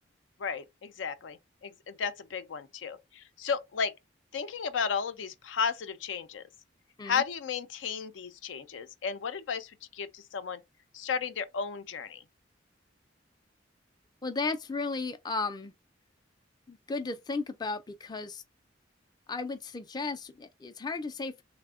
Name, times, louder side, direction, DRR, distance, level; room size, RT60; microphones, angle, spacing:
voice 1, 0.4-3.9 4.3-6.4 7.0-10.6 10.9-12.2, left 6 dB, 80° left, 0.4 m, -34 dB
voice 2, 14.2-15.7 16.7-18.4 19.3-21.4, left 3 dB, 20° left, 0.4 m, -34 dB
3.3 x 2.2 x 3.5 m
head